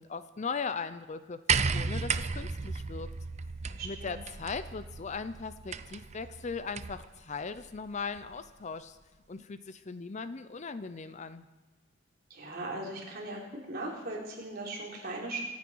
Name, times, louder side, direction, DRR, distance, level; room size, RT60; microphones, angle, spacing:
voice 1, 0.0-1.4 1.7-3.1 3.8-9.0 9.3-11.5, left 5 dB, 35° left, 13 dB, 0.5 m, -38 dB
sound 1, 1.5-7.1 8.2-8.3, right 5 dB, 35° right, 0.5 m, -34 dB
voice 2, 3.7-4.2 12.3-13.4 13.7-15.4, right 2 dB, 50° right, -2 dB, 3.7 m, -38 dB
25.0 x 9.4 x 4.6 m, 1.2 s
head